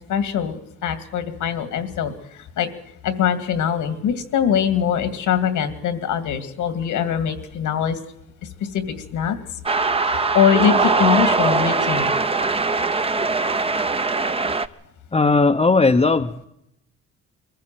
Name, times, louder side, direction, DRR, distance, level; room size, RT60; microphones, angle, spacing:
voice 1, 0.1-2.7 3.0-8.0 8.7-9.4 9.7-12.1, left 8 dB, 85° left, 10 dB, 2.3 m, -22 dB
sound 1, 9.7-14.7, right 3 dB, 20° right, 0.8 m, -21 dB
voice 2, 15.1-16.4, left 3 dB, 20° left, 2 dB, 0.8 m, -17 dB
22.5 x 15.0 x 7.6 m, 0.82 s
cardioid pair, 90°, 30 cm